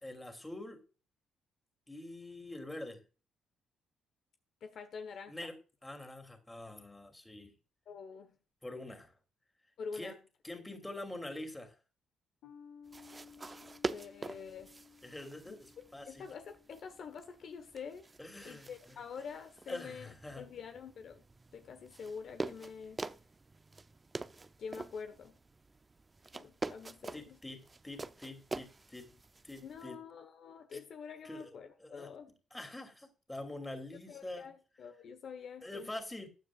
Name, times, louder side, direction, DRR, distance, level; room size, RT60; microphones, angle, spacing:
voice 1, 0.0-0.8 1.9-3.0 5.3-5.6 5.8-7.5 8.6-9.1 9.9-10.1 10.4-11.8 15.0-16.2 18.2-19.3 19.7-20.4 27.1-29.2 29.4-30.0 30.7-30.8 31.2-31.5 31.8-32.1 32.5-34.5 35.6-36.3, left 1 dB, 10° left, 2.9 m, -45 dB
voice 2, 4.6-5.4 7.9-8.4 9.8-10.2 13.9-14.8 15.5-15.6 16.1-18.1 18.4-21.2 21.5-23.0 24.6-25.4 26.3-27.4 29.6-32.3 34.1-35.9, left 6 dB, 60° left, 1.3 m, -46 dB
sound 1, 12.4-19.2, left 6 dB, 85° left, 3.7 m, -59 dB
sound 2, 12.9-29.9, right 3 dB, 25° right, 0.6 m, -46 dB
15.0 x 9.5 x 2.5 m
cardioid pair, 90°, 0 cm